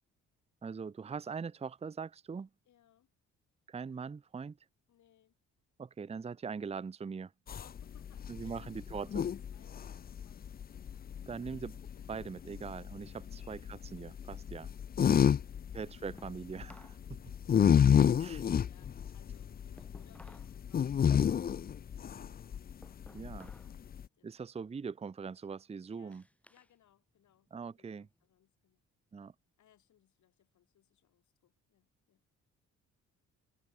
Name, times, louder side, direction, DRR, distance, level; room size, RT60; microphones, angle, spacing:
voice 1, 0.6-2.5 3.7-4.6 5.8-7.3 8.3-9.1 11.3-14.7 15.7-17.0 18.2-18.5 23.1-23.5 24.2-26.2 27.5-28.1 29.1-29.3, right 5 dB, 20° right, 0.6 m, -42 dB
voice 2, 2.6-3.1 4.9-5.4 7.5-8.7 9.0-11.2 12.0-12.3 13.0-13.4 16.8-24.4 25.9-26.2 26.5-28.8 29.6-32.2, left 11 dB, 70° left, 7.8 m, -69 dB
sound 1, 7.5-24.0, left 8 dB, 30° left, 0.5 m, -30 dB
sound 2, 16.2-17.1 17.4-20.6 20.9-23.8 24.2-24.6 25.1-26.7 27.1-28.3, left 1 dB, 5° left, 4.6 m, -60 dB
cardioid pair, 90°, 30 cm